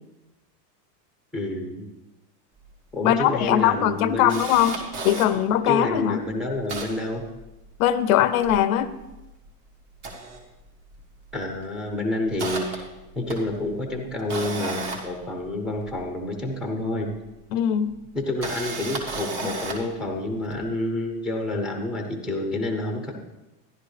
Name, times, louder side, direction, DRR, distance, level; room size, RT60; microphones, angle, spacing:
voice 1, 1.3-1.9 2.9-4.4 5.7-7.2 11.3-12.9 13.1-17.1 18.1-23.1, left 2 dB, ahead, 4 dB, 0.7 m, -28 dB
Camera, 2.7-2.8 3.1-3.2 3.6-5.3 5.9-6.0 6.3-7.9 8.2-9.4 9.9-11.0 11.3-11.6 12.0-16.0 17.1-17.2 18.1-19.9 20.5-20.6, right 3 dB, 35° right, 1.6 m, -34 dB
voice 2, 3.0-4.8 5.0-6.2 7.8-8.9 17.5-18.0, left 11 dB, 65° left, 13 dB, 0.7 m, -21 dB
13.0 x 11.0 x 3.3 m, 1.0 s
supercardioid pair, 165°, 47 cm